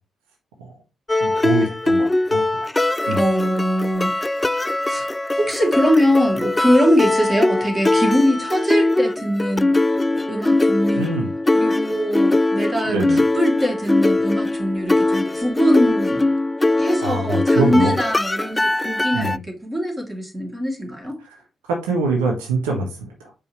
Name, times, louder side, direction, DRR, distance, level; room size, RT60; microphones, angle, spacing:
sound 1, 1.1-19.4, left 2 dB, 20° left, 0.3 m, -21 dB
voice 1, 1.2-2.7 3.1-3.2 10.9-11.3 12.9-13.2 17.0-17.9 19.1-19.4 21.2-21.4 21.7-23.3, right 3 dB, 80° right, 1.2 m, -24 dB
voice 2, 3.1-4.2 4.5-5.1 5.4-9.7 10.3-11.1 11.5-13.0 13.3-16.3 16.8-21.1, equal, 20° right, 2.7 m, -22 dB
6.6 x 5.2 x 3.1 m
figure-of-eight pair, 40°, 0 cm